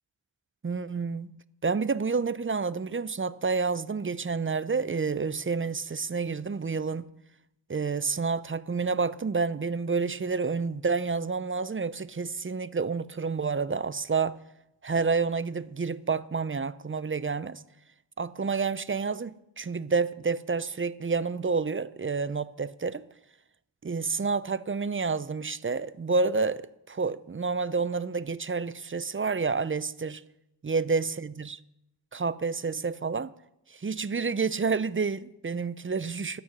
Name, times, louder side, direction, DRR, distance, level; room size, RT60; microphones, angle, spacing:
voice 1, 0.6-1.3 1.6-7.1 7.7-14.4 14.8-17.6 18.2-23.1 23.8-30.2 30.6-31.6 32.1-33.3 33.7-36.4, right 4 dB, 30° right, 0.4 m, -29 dB
12.0 x 8.5 x 6.0 m
wide cardioid pair, 45°, 47 cm